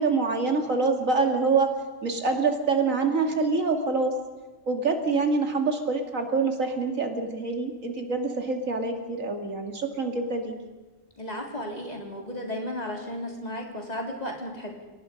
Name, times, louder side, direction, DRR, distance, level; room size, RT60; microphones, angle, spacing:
voice 1, 0.0-1.7 2.0-4.1 4.7-10.6, right 4 dB, 90° right, 4 dB, 2.8 m, -25 dB
voice 2, 11.2-14.7, left 1 dB, 30° left, 0 dB, 3.9 m, -34 dB
29.5 x 19.0 x 5.3 m, 1.2 s
omnidirectional pair, 1.3 m